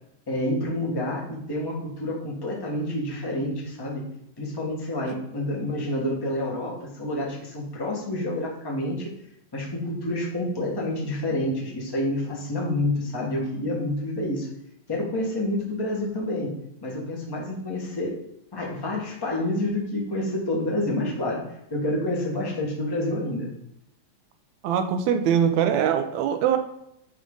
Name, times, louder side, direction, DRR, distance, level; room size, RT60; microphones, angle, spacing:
voice 1, 0.3-4.0 4.4-9.1 9.5-14.5 14.9-16.5 16.8-18.1 18.5-23.5, left 1 dB, 15° left, -3 dB, 0.7 m, -28 dB
voice 2, 24.6-26.6, right 8 dB, 80° right, 7 dB, 2.0 m, -22 dB
10.5 x 3.7 x 3.8 m, 0.76 s
omnidirectional pair, 3.3 m